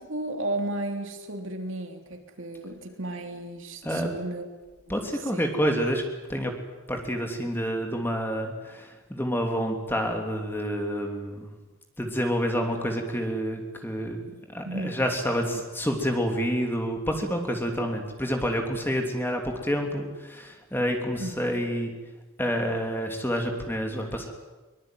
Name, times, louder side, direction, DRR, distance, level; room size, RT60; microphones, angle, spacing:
voice 1, 0.0-4.5 4.9-5.5 14.6-15.0 21.2-21.6, right 1 dB, 60° right, 5 dB, 3.1 m, -34 dB
voice 2, 4.9-6.0 6.3-6.5 6.9-11.5 12.0-21.9 22.4-24.5, equal, 10° left, 3 dB, 3.0 m, -28 dB
23.5 x 20.5 x 9.3 m, 1.2 s
head